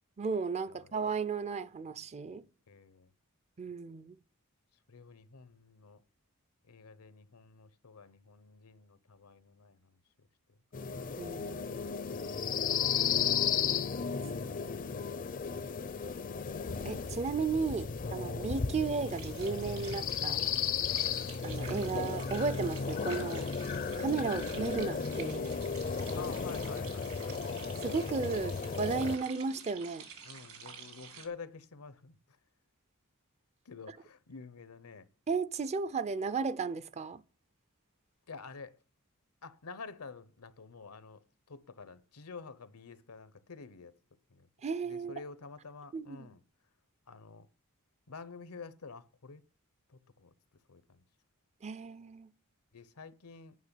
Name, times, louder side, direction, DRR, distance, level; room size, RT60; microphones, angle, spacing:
voice 1, 0.2-2.4 3.6-4.2 11.2-11.8 14.1-14.7 16.9-20.4 21.4-23.5 24.0-25.5 27.8-30.1 35.3-37.2 44.6-45.2 45.9-46.3 51.6-52.3, right 4 dB, 30° right, 0.4 m, -34 dB
voice 2, 2.7-3.1 4.9-6.0 6.7-10.0 12.5-13.0 16.0-16.2 26.1-27.4 30.2-32.2 33.6-35.1 38.3-38.7 39.4-43.9 44.3-44.5 44.9-46.4 47.1-47.5 48.1-49.4 49.9-50.3 50.7-51.0 52.7-53.6, left 4 dB, 85° left, 0.9 m, -49 dB
sound 1, 10.7-29.2, left 6 dB, 40° left, 0.5 m, -34 dB
sound 2, 19.1-31.3, right 6 dB, 70° right, 2.4 m, -50 dB
9.5 x 5.9 x 8.3 m
head